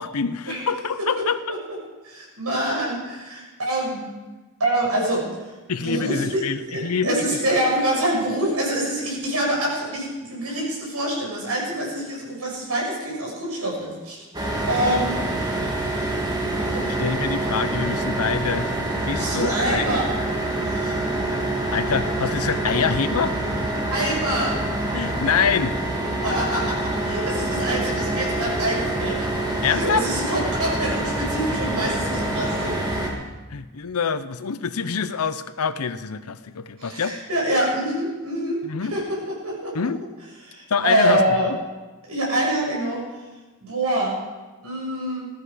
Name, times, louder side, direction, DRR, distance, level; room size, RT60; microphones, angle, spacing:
voice 1, 0.0-1.4 5.7-7.4 17.0-18.8 19.1-19.9 21.7-23.3 24.9-25.8 29.6-30.1 33.5-37.1 38.6-38.9 39.7-40.0 40.7-41.6, left 6 dB, 80° left, 13 dB, 0.7 m, -25 dB
voice 2, 2.0-4.1 4.6-5.3 5.8-6.4 6.7-14.3 14.7-15.2 16.7-16.9 19.2-20.1 20.6-21.0 22.6-22.7 23.9-24.6 26.2-29.2 29.6-32.7 36.8-38.6 38.9-39.7 40.4-41.5 42.1-43.0 43.6-44.2 44.6-45.3, right 1 dB, 90° right, -3 dB, 6.5 m, -25 dB
sound 1, 14.3-33.1, right 1 dB, 15° right, 2.2 m, -26 dB
16.0 x 13.5 x 5.0 m, 1.2 s
head